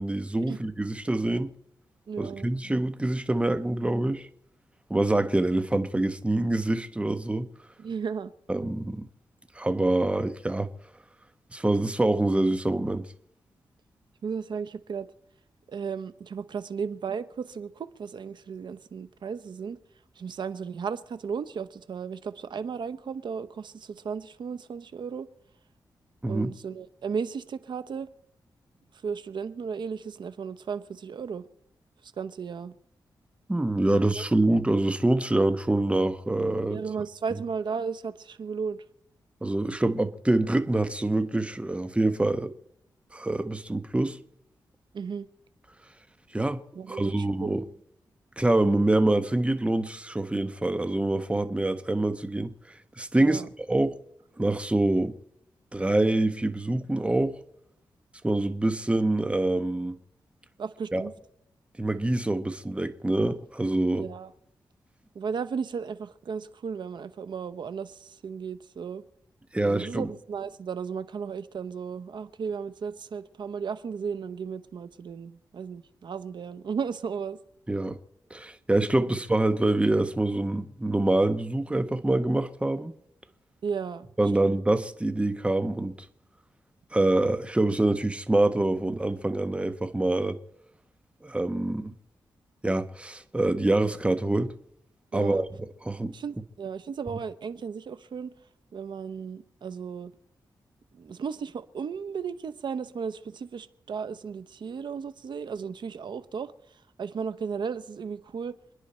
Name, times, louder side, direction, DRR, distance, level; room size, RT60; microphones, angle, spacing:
voice 1, 0.0-1.5 2.2-4.3 4.9-7.5 8.5-9.1 9.5-10.7 11.5-13.1 26.2-26.5 33.5-36.8 39.4-42.5 43.1-44.2 46.3-46.6 46.9-47.6 48.4-53.4 53.7-53.9 54.4-55.1 55.7-57.4 58.2-60.0 60.9-61.1 61.8-64.1 69.5-70.1 77.7-78.0 78.3-82.9 84.2-86.0 86.9-90.4 91.2-91.9 92.6-94.5 95.1-95.5 95.8-96.1, right 2 dB, 15° right, 1.2 m, -25 dB
voice 2, 2.1-2.5 7.8-8.3 14.2-15.1 15.7-19.8 20.2-25.3 26.3-28.1 29.0-31.4 32.2-32.7 34.2-34.3 36.7-38.8 44.9-45.3 46.7-47.6 53.2-53.5 60.6-61.1 63.9-64.3 65.1-69.0 69.6-77.4 79.0-79.2 83.6-84.1 84.4-84.6 95.1-95.4 96.1-98.3 98.7-100.1 100.9-106.5 107.0-108.6, right 6 dB, 70° right, 0.9 m, -35 dB
28.0 x 10.0 x 4.4 m
cardioid pair, 80°, 8 cm